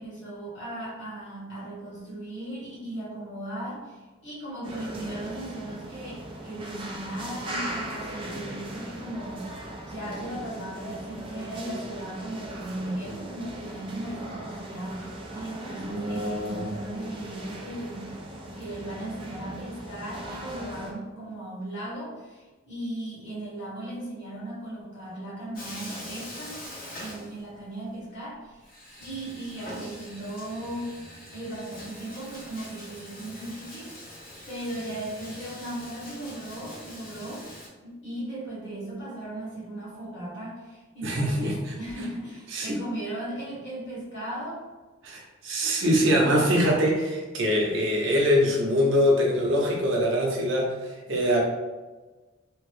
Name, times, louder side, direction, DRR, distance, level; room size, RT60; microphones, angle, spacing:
voice 1, 0.0-9.6 9.9-18.1 18.6-26.6 27.0-28.7 29.0-31.0 31.3-34.0 34.5-37.5 37.8-44.6, right 1 dB, 65° left, -7 dB, 1.3 m, -37 dB
sound 1, 4.6-20.9, right 1 dB, 25° right, 0.3 m, -37 dB
Bathtub (filling or washing), 25.5-27.8 28.1-28.2 28.6-37.7, left 1 dB, 45° left, 0.8 m, -43 dB
voice 2, 41.0-41.7 42.5-42.8 45.0-51.4, equal, 80° right, -1 dB, 0.7 m, -23 dB
2.9 x 2.0 x 3.1 m, 1.3 s
head